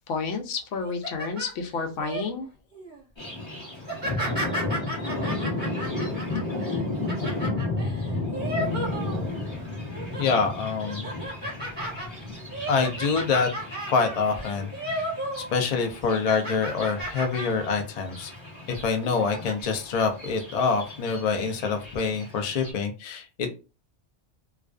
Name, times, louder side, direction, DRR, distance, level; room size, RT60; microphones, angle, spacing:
voice 1, 0.1-2.5, left 4 dB, 85° left, 4 dB, 0.9 m, -30 dB
sound 1, 0.8-2.2 2.7-3.0 3.8-9.5 9.9-10.4 10.8-15.5 15.8-17.7 18.1-18.3 19.0-19.5, right 1 dB, 10° right, 1.1 m, -34 dB
Thunder, 3.2-22.7, left 2 dB, 25° left, 0.8 m, -33 dB
voice 2, 10.1-11.1 12.2-12.3 12.7-13.5 13.9-15.1 15.5-18.3 18.7-23.5, left 5 dB, 55° left, 4 dB, 0.4 m, -26 dB
2.4 x 2.3 x 2.3 m, 0.32 s
omnidirectional pair, 1.2 m